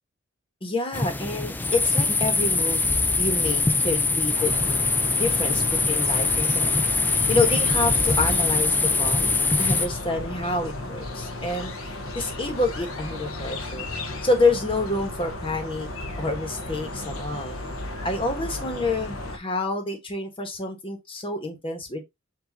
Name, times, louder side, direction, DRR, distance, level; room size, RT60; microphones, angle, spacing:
voice 1, 0.6-2.8 3.2-4.5 5.1-6.7 7.0-13.9 14.2-17.6 18.0-22.0, left 2 dB, 25° left, 1.2 m, -28 dB
sound 1, 0.9-9.9, left 3 dB, 10° left, 0.3 m, -23 dB
sound 2, 4.3-19.4, left 2 dB, 85° left, 0.9 m, -34 dB
7.2 x 2.6 x 2.7 m
head